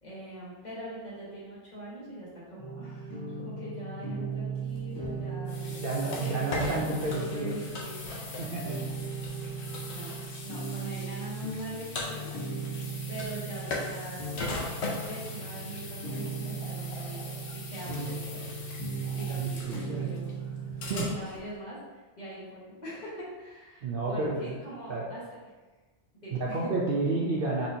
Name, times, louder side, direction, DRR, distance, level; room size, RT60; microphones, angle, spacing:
voice 1, 0.0-8.0 9.9-12.3 12.6-12.8 13.1-14.4 15.0-17.2 17.5-18.5 19.1-25.4 26.1-26.7, right 1 dB, 40° left, -8 dB, 1.5 m, -43 dB
sound 1, 2.6-21.2, right 4 dB, 20° left, 0.8 m, -37 dB
sound 2, 4.8-21.5, left 3 dB, 70° left, 1.0 m, -40 dB
voice 2, 5.7-7.5 8.4-8.9 17.9-18.1 19.4-20.1 20.9-21.1 23.8-24.6 24.9-25.0 26.3-27.7, right 3 dB, 55° right, -4 dB, 0.7 m, -30 dB
4.3 x 4.0 x 2.7 m, 1.2 s
omnidirectional pair, 1.2 m